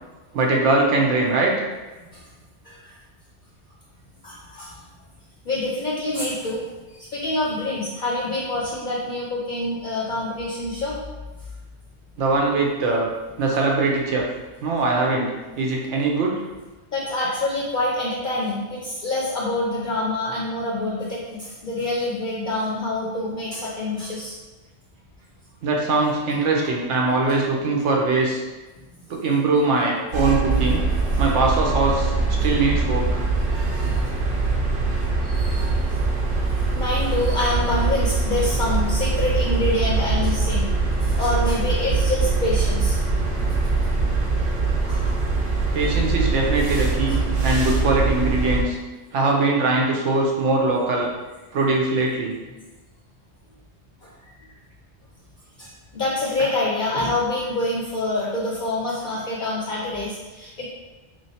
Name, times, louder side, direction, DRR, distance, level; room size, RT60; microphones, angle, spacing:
voice 1, 0.3-1.5 12.2-13.1 13.4-14.3 14.6-15.3 15.6-16.3 25.6-28.4 29.1-30.8 31.2-32.1 32.4-33.2 34.0-34.1 45.7-48.8 49.1-51.1 51.5-52.3, right 3 dB, 85° right, -1 dB, 1.0 m, -21 dB
voice 2, 4.2-4.7 5.4-6.6 6.9-10.9 13.5-13.6 16.9-24.4 33.8-34.4 35.2-35.8 36.5-40.7 41.0-43.0 44.9-45.2 47.1-47.2 54.0-54.1 55.6-60.7, left 2 dB, 55° left, -5 dB, 0.6 m, -26 dB
sound 1, 30.1-48.6, right 3 dB, 55° right, 0.9 m, -22 dB
3.1 x 2.8 x 2.8 m, 1.2 s
omnidirectional pair, 1.2 m